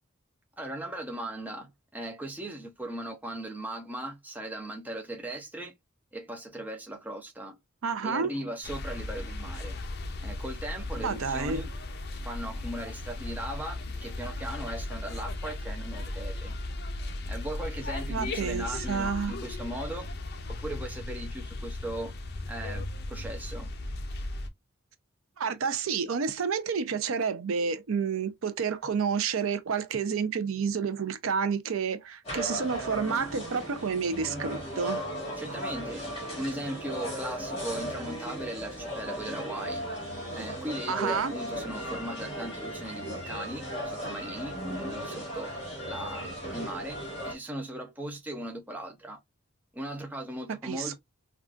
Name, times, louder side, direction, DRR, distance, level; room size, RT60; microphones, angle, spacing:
voice 1, 0.6-5.7 6.1-7.6 8.0-9.8 10.2-11.7 12.2-16.5 17.3-20.1 20.5-22.1 22.5-23.7 35.4-36.1 36.4-39.9 40.3-44.6 44.9-45.6 45.8-47.0 47.2-49.2 49.7-50.9, right 1 dB, 10° right, 0.5 m, -38 dB
voice 2, 7.8-8.3 11.0-11.6 18.1-19.3 25.4-35.0 40.9-41.3 50.6-50.9, right 6 dB, 80° right, 0.5 m, -30 dB
sound 1, 8.6-24.5, left 2 dB, 50° left, 0.5 m, -36 dB
sound 2, 32.2-47.3, equal, 30° left, 1.9 m, -36 dB
3.7 x 2.3 x 2.3 m
head